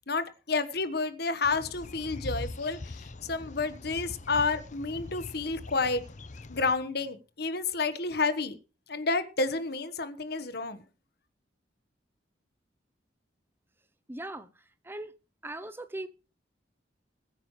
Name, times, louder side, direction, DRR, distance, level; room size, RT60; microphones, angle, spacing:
voice 1, 0.1-6.0 6.5-8.6 8.9-10.8, left 3 dB, 60° left, 1.3 m, -30 dB
sound 1, 1.4-6.8, left 2 dB, 45° left, 0.8 m, -42 dB
voice 2, 14.1-15.1 15.4-16.1, right 1 dB, 10° right, 0.7 m, -39 dB
21.0 x 9.3 x 3.2 m
head